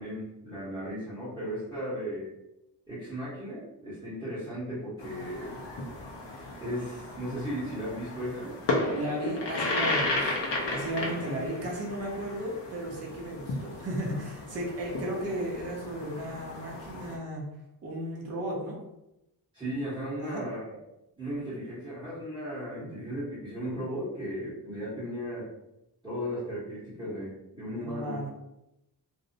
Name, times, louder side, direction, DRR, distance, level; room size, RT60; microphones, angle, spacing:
voice 1, 0.0-2.3 2.9-5.6 6.6-8.5 10.9-11.1 19.5-20.8 21.2-25.5 26.0-28.1, equal, 10° right, -11 dB, 1.0 m, -36 dB
sound 1, 5.0-17.2, left 2 dB, 80° left, 0.6 m, -34 dB
voice 2, 8.9-10.4 10.7-17.5 17.8-18.8 20.2-20.5 27.8-28.3, right 1 dB, 35° right, -2 dB, 0.6 m, -35 dB
2.5 x 2.0 x 2.6 m, 0.88 s
wide cardioid pair, 140°, 42 cm